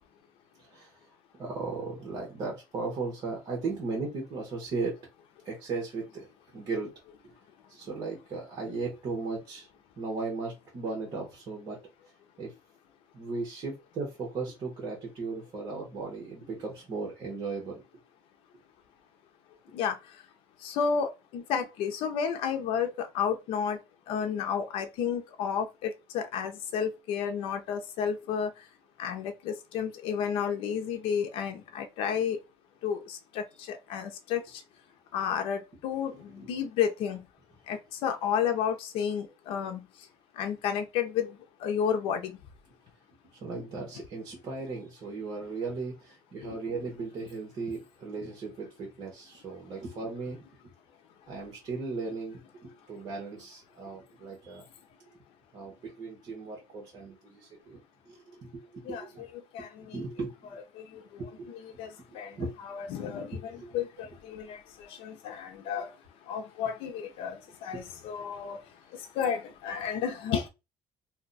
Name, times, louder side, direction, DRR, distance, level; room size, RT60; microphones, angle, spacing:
voice 1, 0.6-0.9 1.3-4.9 5.4-6.3 6.5-6.9 7.7-9.7 10.0-11.8 12.4-12.5 13.1-17.8 36.3-36.5 43.3-50.4 51.3-54.7 55.5-57.8 58.1-58.5 58.7-59.2 59.6-60.5 61.2-61.5 62.4-62.5 63.3-63.8 67.7-67.8, right 3 dB, 45° right, 1.0 m, -36 dB
voice 2, 20.6-23.8 24.1-28.5 29.0-32.4 32.8-33.0 33.7-34.4 35.1-36.1 36.5-37.2 37.7-39.8 40.4-41.3 41.6-42.3 58.9-59.0 59.5-59.7 61.5-61.9 62.1-62.3 62.6-63.3 63.7-63.9 64.3-64.6 65.0-65.9 66.3-68.6 69.2-70.5, left 7 dB, 80° left, 0.5 m, -31 dB
2.6 x 2.2 x 3.8 m
cardioid pair, 140°, 10 cm